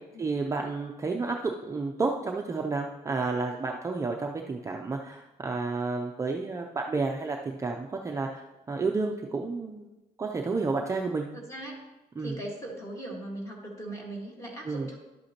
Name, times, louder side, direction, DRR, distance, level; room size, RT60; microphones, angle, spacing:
voice 1, 0.2-9.9 10.2-11.3 12.2-12.4 14.6-14.9, right 3 dB, 20° right, 1 dB, 0.4 m, -31 dB
voice 2, 11.3-11.8 12.2-15.0, right 1 dB, 20° left, -1 dB, 1.7 m, -39 dB
11.0 x 7.9 x 2.9 m, 1.0 s
cardioid pair, 175°, 17 cm